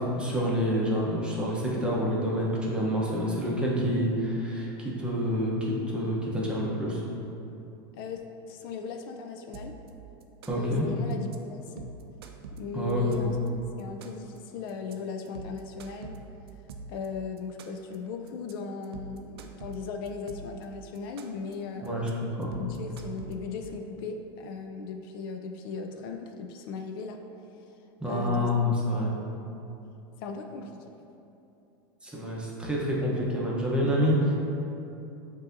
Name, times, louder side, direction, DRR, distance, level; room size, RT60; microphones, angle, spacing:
voice 1, 0.0-7.0 10.5-10.9 12.7-13.3 21.8-22.1 22.4-22.5 28.0-29.1 32.0-34.3, equal, 10° right, -5 dB, 0.8 m, -27 dB
voice 2, 8.0-9.7 10.5-11.9 12.6-13.4 13.8-16.2 16.9-21.9 22.6-27.2 28.1-28.5 30.2-30.8, left 5 dB, 65° left, 4 dB, 0.4 m, -37 dB
sound 1, 9.5-9.9 10.2-10.8 11.1-11.4 11.7-13.5 13.8-14.4 14.7-14.9 15.3-17.1 17.4-18.0 18.3-18.5 18.8-20.6 21.0-21.5 21.9-22.1 22.4-23.7, right 3 dB, 85° right, 0.4 m, -44 dB
7.2 x 2.7 x 2.6 m, 2.9 s
supercardioid pair, 125°, 13 cm